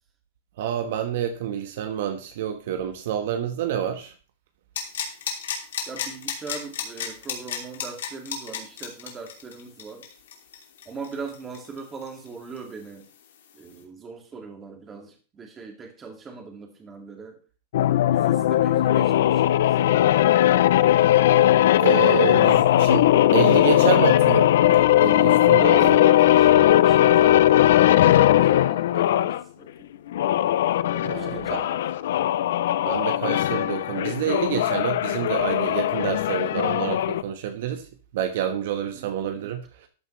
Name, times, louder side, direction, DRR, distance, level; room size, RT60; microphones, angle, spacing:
voice 1, 0.6-4.1 21.8-26.0 31.0-31.6 32.8-37.9 38.1-39.9, right 10 dB, 55° right, 7 dB, 1.3 m, -28 dB
sound 1, 4.8-12.3 12.6-12.7, left 7 dB, 85° left, 2.8 m, -32 dB
voice 2, 5.9-10.1 10.9-13.1 13.5-17.4 18.1-20.2 22.2-22.6 25.8-29.9 30.9-31.8 38.9-39.1, right 4 dB, 15° right, 2 dB, 2.2 m, -40 dB
sound 2, 17.7-29.4 30.1-37.2, left 13 dB, 65° left, 0.5 m, -19 dB
13.0 x 9.1 x 3.2 m, 0.37 s
supercardioid pair, 170°, 0 cm